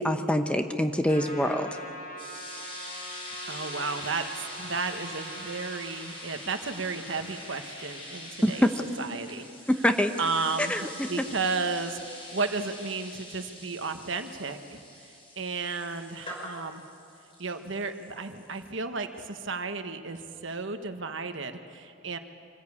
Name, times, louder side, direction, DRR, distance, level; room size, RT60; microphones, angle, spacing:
voice 1, 0.0-1.7 8.4-8.7 9.7-10.1 10.6-10.9, equal, 5° left, 6 dB, 0.8 m, -24 dB
Trumpet, 1.1-5.8, equal, 45° left, 4.1 m, -42 dB
sound 1, 2.2-18.7, left 1 dB, 25° left, 5.2 m, -43 dB
voice 2, 3.5-8.7 9.0-9.4 10.2-14.8 15.4-16.8 17.4-22.2, right 4 dB, 65° right, 7 dB, 1.3 m, -33 dB
25.0 x 16.0 x 8.5 m, 2.5 s
head